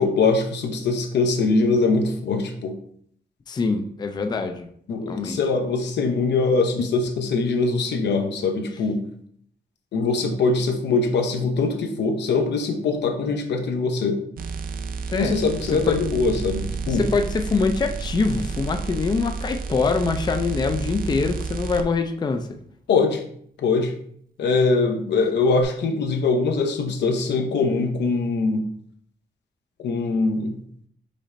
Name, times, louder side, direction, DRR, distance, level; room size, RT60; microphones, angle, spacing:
voice 1, 0.0-2.7 4.9-9.0 9.9-14.2 15.1-17.0 22.9-23.2 23.6-23.9 24.4-28.6 29.8-30.6, left 4 dB, 85° left, 5 dB, 0.7 m, -22 dB
voice 2, 3.5-4.7 5.1-5.4 15.1-15.4 15.7-16.0 16.9-22.6, left 4 dB, 25° left, 7 dB, 0.4 m, -24 dB
sound 1, 14.4-21.8 25.6-25.7, right 5 dB, 55° right, 0.4 m, -31 dB
5.1 x 2.5 x 4.1 m, 0.64 s
wide cardioid pair, 140°, 17 cm